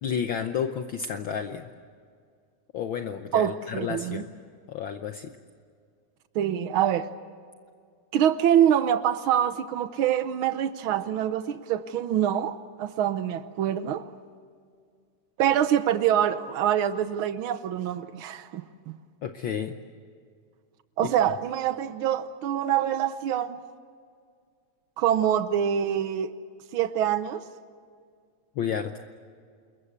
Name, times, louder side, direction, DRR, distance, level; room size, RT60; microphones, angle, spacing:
voice 1, 0.0-1.7 2.7-4.3 4.7-5.4 19.2-19.7 21.0-21.1 28.5-29.0, left 7 dB, 80° left, 1.1 m, -31 dB
voice 2, 3.3-4.2 6.3-7.1 8.1-14.1 15.4-18.9 21.0-23.6 25.0-26.3 26.7-27.4, right 10 dB, 85° right, 1.1 m, -25 dB
28.5 x 22.0 x 8.2 m
omnidirectional pair, 3.4 m